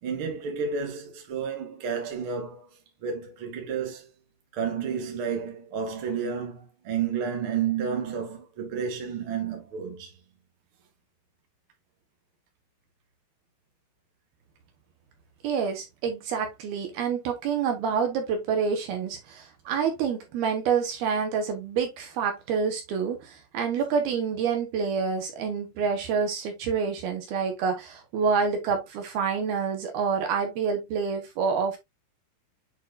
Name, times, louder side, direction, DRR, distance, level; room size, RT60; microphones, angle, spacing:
voice 1, 0.0-4.1 4.5-10.1, right 6 dB, 40° right, 2.3 m, -31 dB
voice 2, 15.4-31.8, right 6 dB, 70° right, 3.1 m, -27 dB
8.5 x 4.7 x 2.6 m
omnidirectional pair, 4.8 m